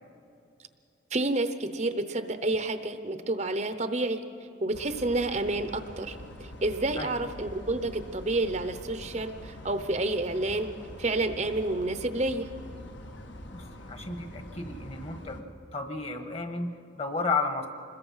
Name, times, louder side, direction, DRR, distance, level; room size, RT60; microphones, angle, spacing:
voice 1, 1.1-4.2 4.6-10.7 11.0-12.5, right 2 dB, 35° right, 9 dB, 0.8 m, -29 dB
sound 1, 4.7-15.4, left 1 dB, 70° left, 1.5 m, -44 dB
voice 2, 13.5-15.4 15.7-17.7, left 3 dB, 30° left, 6 dB, 1.4 m, -33 dB
26.5 x 21.0 x 5.6 m, 2.5 s
head